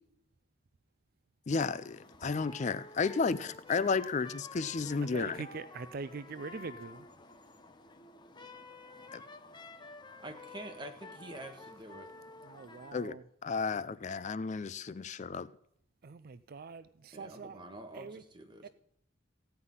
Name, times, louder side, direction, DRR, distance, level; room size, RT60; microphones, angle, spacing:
voice 1, 1.5-5.4 9.1-9.2 12.9-13.2 13.4-15.5, left 4 dB, 40° left, 0.4 m, -32 dB
sound 1, 1.5-12.9, left 3 dB, 25° left, 0.9 m, -51 dB
voice 2, 5.1-7.1 12.4-13.2 13.7-13.8 16.0-17.6 17.9-18.2 18.6-18.7, right 4 dB, 50° right, 0.4 m, -43 dB
voice 3, 10.2-12.1 17.1-18.7, right 1 dB, 25° right, 1.7 m, -47 dB
15.5 x 5.7 x 9.6 m
head